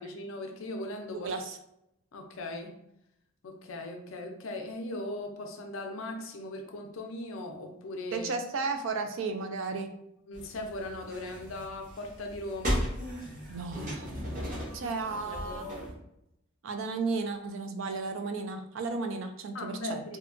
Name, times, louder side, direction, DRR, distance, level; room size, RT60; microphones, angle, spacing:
voice 1, 0.0-1.3 2.1-2.7 3.4-8.3 10.3-12.8 14.8-15.9 19.5-20.2, left 1 dB, 65° left, 3 dB, 0.4 m, -39 dB
voice 2, 1.1-1.6 8.1-9.9 13.5-14.1 14.7-15.7 16.6-20.0, right 4 dB, 60° right, 6 dB, 0.3 m, -34 dB
sound 1, 10.3-15.9, equal, 35° right, 0.7 m, -36 dB
2.7 x 2.2 x 2.4 m, 0.80 s
head